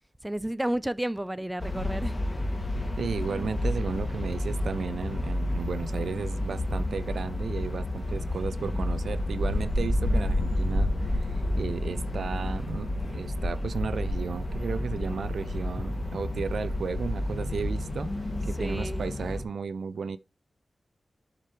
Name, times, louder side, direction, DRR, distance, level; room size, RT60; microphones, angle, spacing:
voice 1, 0.2-2.2 2.5-2.6 18.5-19.1, right 1 dB, 15° right, 0.5 m, -31 dB
sound 1, 1.6-19.4, left 1 dB, 35° left, 2.8 m, -30 dB
voice 2, 3.0-18.1 18.4-20.2, right 5 dB, 90° right, 0.5 m, -34 dB
7.4 x 5.1 x 4.5 m
cardioid pair, 60°, 0 cm